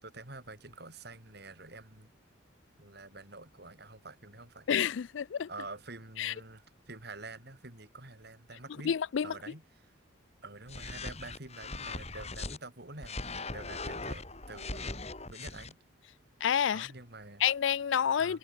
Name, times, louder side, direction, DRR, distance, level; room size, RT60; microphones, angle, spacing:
voice 1, 0.0-2.1 2.8-4.7 5.5-9.0 9.2-9.9 10.4-13.2 13.5-15.0 15.3-15.8 16.7-17.4 18.2-18.4, right 3 dB, 50° right, 4.3 m, -47 dB
voice 2, 4.7-5.5 6.2-6.3 8.9-9.3 16.4-16.9 17.4-18.4, left 8 dB, 65° left, 0.4 m, -29 dB
sound 1, 10.7-12.6 13.0-15.7, left 3 dB, 30° left, 4.3 m, -40 dB
head